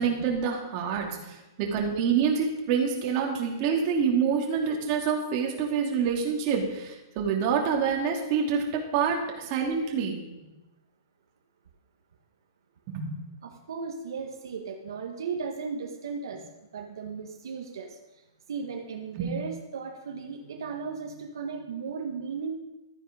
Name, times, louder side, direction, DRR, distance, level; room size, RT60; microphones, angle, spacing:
voice 1, 0.0-10.2 12.9-13.1 19.1-19.3, right 6 dB, 35° right, 0 dB, 2.7 m, -27 dB
voice 2, 13.4-18.2 18.5-22.6, right 5 dB, 75° right, 2 dB, 1.7 m, -36 dB
13.0 x 9.9 x 5.2 m, 1.0 s
hypercardioid pair, 155°, 2 cm